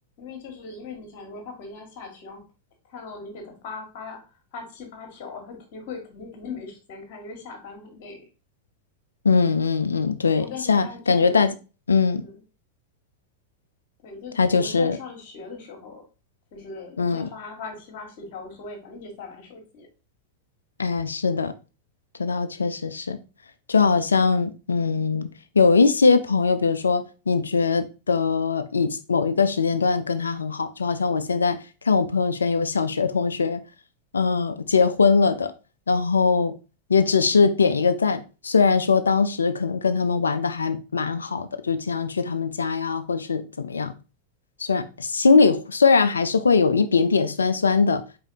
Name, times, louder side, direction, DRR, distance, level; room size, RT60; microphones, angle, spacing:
voice 1, 0.2-2.4 2.9-8.2 10.3-11.5 12.2-12.4 14.0-16.0 16.5-19.9, left 4 dB, 50° left, 1.4 m, -39 dB
voice 2, 9.2-11.5 11.9-12.2 14.4-15.0 17.0-17.3 20.8-21.5 22.2-23.2 23.7-25.3 25.6-31.6 31.8-33.6 34.1-35.5 35.9-36.5 36.9-43.9 44.6-48.0, left 4 dB, 75° left, 0.4 m, -21 dB
4.8 x 3.8 x 2.6 m
figure-of-eight pair, 90°, 0 cm